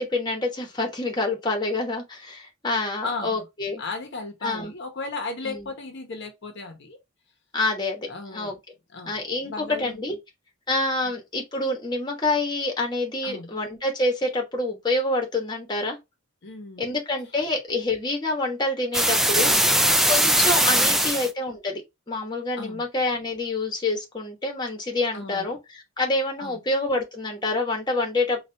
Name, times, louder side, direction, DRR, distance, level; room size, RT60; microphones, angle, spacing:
voice 1, 0.0-3.8 4.4-4.7 5.4-5.7 7.5-8.5 9.0-10.2 10.7-16.0 16.8-19.6 20.1-21.8 22.1-28.5, left 2 dB, 20° left, 1.1 m, -27 dB
voice 2, 3.0-3.5 3.8-7.0 8.1-8.5 8.9-10.0 13.2-13.5 16.4-16.9 19.4-19.7 20.7-21.2 22.5-22.9 25.1-25.6 26.4-26.6, left 3 dB, 60° left, 0.9 m, -36 dB
sound 1, 18.9-21.3, right 1 dB, ahead, 0.3 m, -20 dB
4.3 x 2.4 x 3.3 m
head